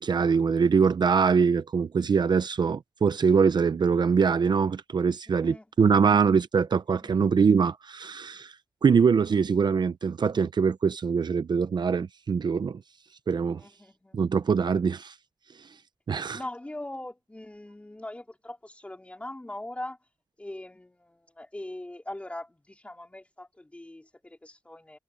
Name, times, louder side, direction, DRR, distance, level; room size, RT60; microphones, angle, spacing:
voice 1, 0.0-8.5 8.8-12.8 13.3-13.6 14.1-15.1 16.1-16.4, right 6 dB, 55° right, 0.6 m, -23 dB
voice 2, 5.3-6.2 7.0-7.2 13.5-14.2 16.3-20.0 20.4-25.0, left 1 dB, 15° left, 3.9 m, -41 dB
wide cardioid pair, 110°, 9 cm